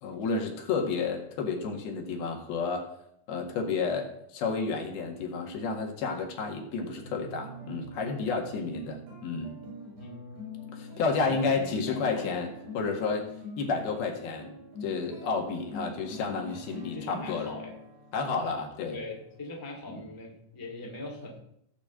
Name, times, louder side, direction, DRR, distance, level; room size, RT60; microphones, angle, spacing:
voice 1, 0.0-2.9 3.3-9.6 10.7-13.3 13.6-14.6 14.8-17.5 18.1-19.0 19.9-20.0, left 4 dB, 80° left, 1 dB, 3.6 m, -31 dB
sound 1, 7.0-19.8, left 2 dB, 80° right, 6.6 m, -45 dB
voice 2, 11.2-12.4 16.9-17.8 18.9-21.4, left 2 dB, 10° left, -1 dB, 1.5 m, -41 dB
15.0 x 5.2 x 7.7 m, 0.75 s
omnidirectional pair, 4.3 m